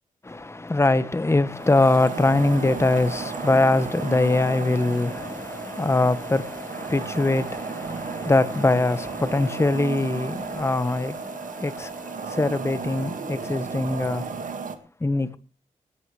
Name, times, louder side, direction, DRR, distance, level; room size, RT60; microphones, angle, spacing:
voice 1, 0.2-14.5 15.0-15.4, left 2 dB, 20° left, 1.2 m, -23 dB
sound 1, 1.5-14.8, right 5 dB, 65° right, 1.7 m, -34 dB
18.5 x 17.0 x 3.2 m
wide cardioid pair, 110°, 15 cm